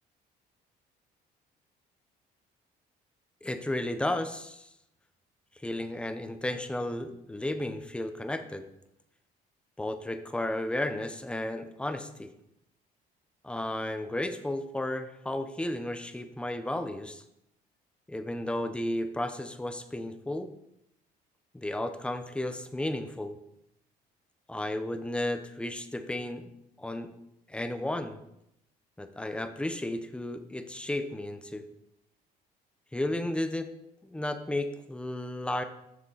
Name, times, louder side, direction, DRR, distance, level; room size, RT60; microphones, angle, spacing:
voice 1, 3.4-4.7 5.6-8.7 9.8-12.3 13.4-17.2 18.1-20.5 21.5-23.4 24.5-26.5 26.8-27.1 27.5-28.2 29.0-31.6 32.9-33.7 34.0-35.6, left 1 dB, 5° left, 9 dB, 0.7 m, -33 dB
7.4 x 6.4 x 3.9 m, 0.81 s
cardioid pair, 110°, 17 cm